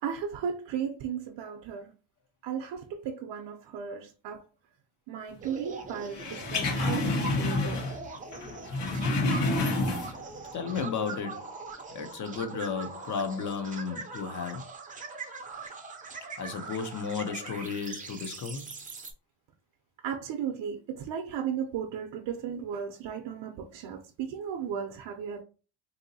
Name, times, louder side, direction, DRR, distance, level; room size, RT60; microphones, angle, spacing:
voice 1, 0.0-1.9 2.4-4.4 5.1-7.8 20.0-25.4, right 8 dB, 65° right, 0.6 m, -35 dB
sound 1, 5.4-19.1, right 4 dB, 20° right, 0.4 m, -42 dB
sound 2, 6.1-8.1 8.3-10.3 10.7-10.8, left 2 dB, 65° left, 1.1 m, -29 dB
voice 2, 10.5-11.5 11.9-14.6 16.4-18.7, left 5 dB, 45° left, 0.5 m, -33 dB
3.7 x 2.7 x 2.6 m
cardioid pair, 175°, 45 cm